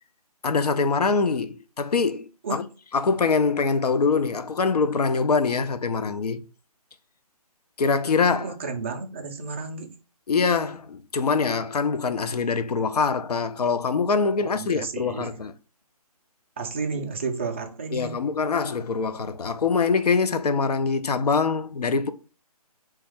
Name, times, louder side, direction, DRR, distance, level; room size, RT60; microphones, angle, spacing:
voice 1, 0.4-2.6 2.9-6.4 7.8-8.5 10.3-15.5 17.9-22.1, left 4 dB, 80° left, 0.5 m, -24 dB
voice 2, 8.4-9.9 14.4-15.3 16.6-18.1, right 4 dB, 20° right, 0.3 m, -32 dB
2.9 x 2.3 x 3.3 m
figure-of-eight pair, 150°, 20 cm